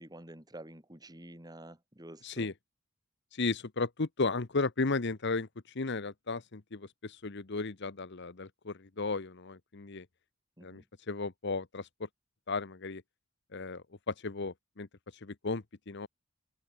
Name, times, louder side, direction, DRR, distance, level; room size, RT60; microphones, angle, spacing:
voice 1, 0.0-2.5 10.6-10.8, right 1 dB, 20° right, 4.1 m, -49 dB
voice 2, 3.3-10.1 10.6-12.1 12.5-13.0 13.5-16.1, left 3 dB, 55° left, 1.0 m, -35 dB
open air
head